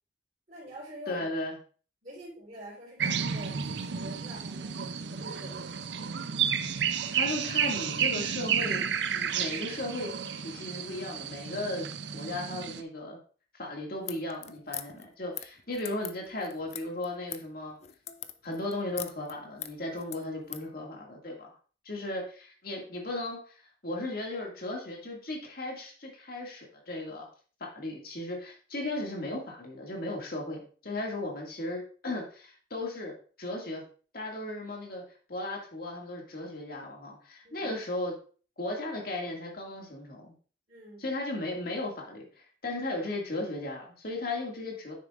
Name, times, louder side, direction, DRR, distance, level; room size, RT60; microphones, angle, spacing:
voice 1, 0.5-1.3 2.0-5.6 22.0-22.1 37.4-37.7 40.7-41.1, right 1 dB, 40° right, -10 dB, 3.6 m, -46 dB
voice 2, 1.1-1.6 6.6-6.7 7.1-8.9 9.1-10.1 10.4-13.2 13.6-17.8 18.4-21.5 21.9-27.3 27.6-33.8 34.1-35.0 35.3-38.1 38.6-40.3 41.0-44.9, left 2 dB, 55° left, 0 dB, 2.1 m, -36 dB
sound 1, 3.0-12.8, right 7 dB, 70° right, 0.6 m, -31 dB
sound 2, 14.0-20.7, left 11 dB, 35° left, 0.4 m, -42 dB
9.3 x 7.0 x 2.5 m, 0.40 s
head